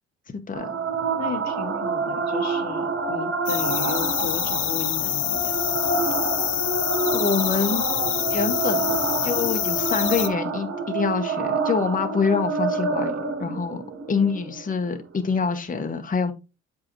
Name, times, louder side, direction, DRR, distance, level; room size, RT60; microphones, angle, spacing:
voice 1, 0.3-0.6 7.1-7.8 8.3-13.8 14.1-16.3, left 5 dB, 25° left, 1.0 m, -26 dB
sound 1, 0.5-15.5, right 4 dB, 45° right, 1.1 m, -28 dB
voice 2, 1.2-5.6, left 6 dB, 60° left, 1.1 m, -34 dB
sound 2, 3.5-10.3, left 14 dB, 90° left, 0.7 m, -26 dB
7.4 x 5.0 x 3.0 m
cardioid pair, 90°, 30 cm